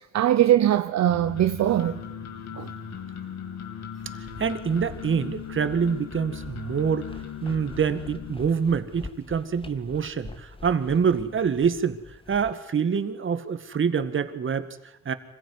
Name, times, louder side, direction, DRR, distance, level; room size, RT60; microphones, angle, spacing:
voice 1, 0.0-2.0 2.6-2.7, right 12 dB, 60° right, 0.9 m, -21 dB
sound 1, 1.1-8.3, left 7 dB, 65° left, 3.4 m, -38 dB
sound 2, 4.0-12.5, left 2 dB, 20° left, 1.8 m, -46 dB
voice 2, 4.1-15.1, right 6 dB, 40° right, 2.0 m, -26 dB
25.0 x 15.5 x 9.8 m
cardioid pair, 90°, 30 cm